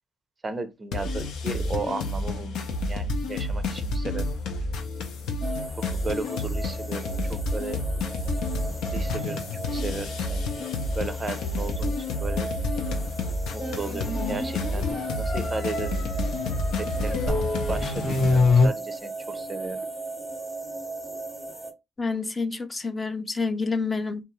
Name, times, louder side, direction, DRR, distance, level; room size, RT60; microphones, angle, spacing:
voice 1, 0.4-4.5 5.8-7.8 8.9-9.4 9.7-10.4 10.9-12.5 13.5-14.9 15.1-16.1 16.8-17.4 17.7-19.9, right 3 dB, 30° right, 0.4 m, -35 dB
sound 1, 0.9-18.4, left 2 dB, 90° left, 0.6 m, -30 dB
sound 2, 5.4-21.7, right 3 dB, 10° left, 0.9 m, -37 dB
sound 3, 13.6-18.7, left 3 dB, 75° left, 1.0 m, -26 dB
voice 2, 22.0-24.2, left 4 dB, 25° left, 0.5 m, -28 dB
2.6 x 2.3 x 3.0 m
cardioid pair, 90°, 0 cm